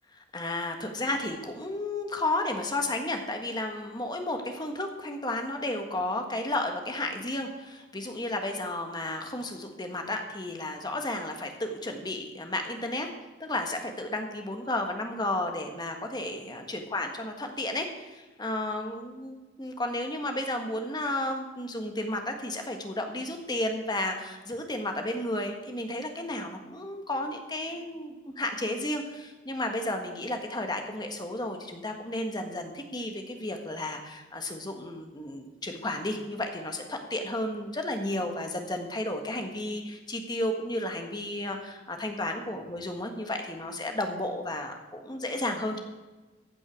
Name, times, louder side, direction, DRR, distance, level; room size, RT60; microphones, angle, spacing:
voice 1, 0.3-13.1 13.4-45.8, left 1 dB, 20° left, 4 dB, 1.5 m, -33 dB
15.0 x 7.7 x 6.4 m, 1.2 s
head